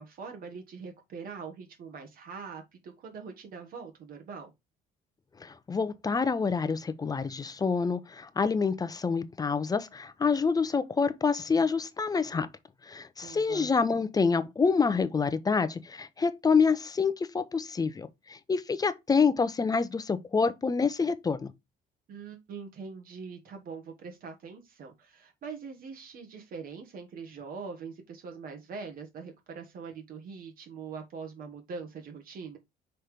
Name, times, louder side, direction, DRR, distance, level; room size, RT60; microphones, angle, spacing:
voice 1, 0.0-4.5 13.2-13.7 22.1-32.6, right 5 dB, 60° right, 1.5 m, -43 dB
voice 2, 5.4-12.5 12.8-21.5, left 5 dB, 20° left, 0.7 m, -27 dB
5.8 x 3.3 x 5.1 m
cardioid pair, 110°, 17 cm